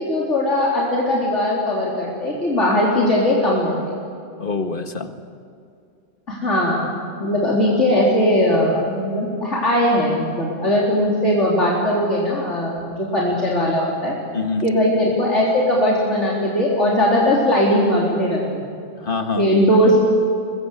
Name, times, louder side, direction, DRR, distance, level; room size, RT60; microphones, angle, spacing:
voice 1, 0.0-3.8 6.3-14.1 14.6-18.7 19.4-20.0, left 1 dB, 85° left, -5 dB, 4.2 m, -19 dB
voice 2, 4.4-5.1 14.3-14.7 19.0-20.0, left 4 dB, 50° left, 6 dB, 1.8 m, -25 dB
25.0 x 21.5 x 8.3 m, 2.5 s
omnidirectional pair, 1.2 m